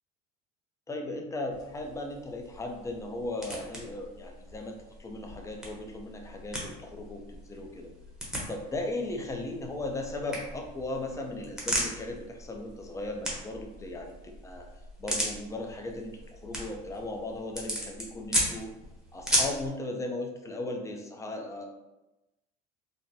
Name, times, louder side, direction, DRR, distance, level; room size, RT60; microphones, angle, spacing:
voice 1, 0.9-7.9 8.5-14.7 15.0-18.7 19.1-21.7, left 2 dB, 15° left, 2 dB, 0.5 m, -37 dB
sound 1, 1.5-19.7, equal, 5° right, 0.9 m, -37 dB
3.8 x 2.1 x 2.7 m, 1.0 s
supercardioid pair, 105°, 19 cm